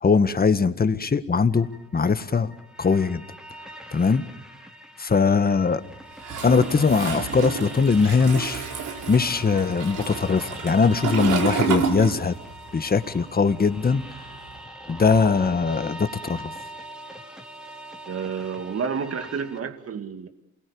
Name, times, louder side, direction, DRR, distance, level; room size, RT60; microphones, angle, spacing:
voice 1, 0.0-1.7 1.9-2.5 2.8-3.2 3.9-4.2 5.0-5.8 6.4-8.6 9.1-12.4 12.7-14.0 14.9-16.5, left 5 dB, 30° left, 11 dB, 1.8 m, -21 dB
sound 1, 1.5-19.6, equal, ahead, 3.0 m, -41 dB
Toilet flush, 6.2-12.7 12.9-14.5, right 6 dB, 80° right, 4.4 m, -30 dB
voice 2, 18.1-20.3, right 6 dB, 50° right, 8 dB, 2.5 m, -30 dB
28.5 x 21.5 x 7.1 m, 0.89 s
cardioid pair, 90°, 30 cm